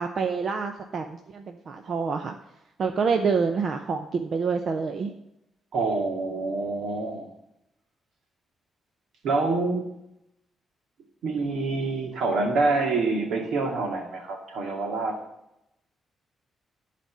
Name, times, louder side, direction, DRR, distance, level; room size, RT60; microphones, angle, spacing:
voice 1, 0.0-2.3 2.8-5.2, right 5 dB, 45° right, 5 dB, 0.6 m, -27 dB
voice 2, 5.7-7.3 9.2-9.9 11.2-15.1, right 3 dB, 75° right, 2 dB, 2.2 m, -26 dB
11.5 x 4.2 x 7.4 m, 0.86 s
wide cardioid pair, 165°, 0 cm